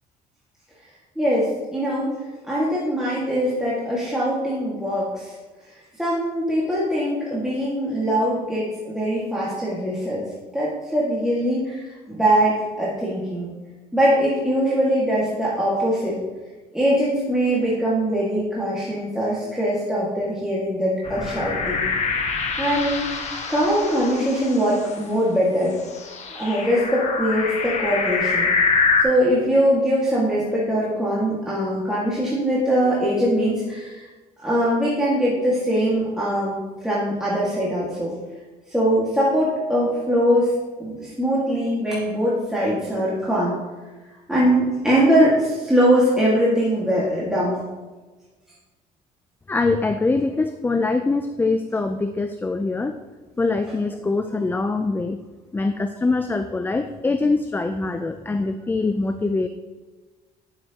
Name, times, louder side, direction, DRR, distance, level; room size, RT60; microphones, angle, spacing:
voice 1, 1.2-2.1 2.5-5.3 6.0-10.3 10.5-13.5 13.9-16.2 16.7-21.9 22.6-25.8 26.4-28.5 29.0-34.1 34.4-38.1 38.7-40.5 40.8-43.6 44.3-47.7, equal, 5° right, -7 dB, 1.8 m, -22 dB
sound 1, 21.0-25.0 25.9-29.0, left 4 dB, 40° left, 1.3 m, -25 dB
voice 2, 49.5-52.9 53.4-55.2 55.5-59.5, left 3 dB, 10° left, 8 dB, 0.3 m, -23 dB
11.0 x 6.3 x 2.9 m, 1.3 s
cardioid pair, 110°, 17 cm